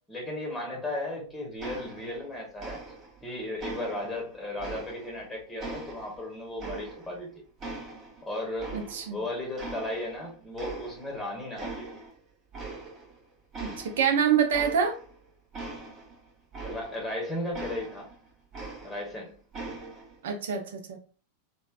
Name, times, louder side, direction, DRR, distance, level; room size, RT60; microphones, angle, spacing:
voice 1, 0.1-2.8 3.2-7.3 8.2-8.8 9.1-11.9 16.6-18.1 18.8-19.4, left 1 dB, 10° left, 1.0 m, -35 dB
sound 1, 1.6-2.3 2.6-3.2 3.6-5.2 5.6-7.3 7.6-9.2 9.6-10.2 10.6-11.2 11.6-12.1 12.5-13.2 13.5-17.1 17.5-19.2 19.5-20.2, right 3 dB, 30° right, 0.8 m, -41 dB
voice 2, 8.7-9.2 13.6-15.0 20.2-21.0, right 7 dB, 60° right, 0.5 m, -26 dB
3.1 x 2.2 x 2.4 m
figure-of-eight pair, 90°, 0 cm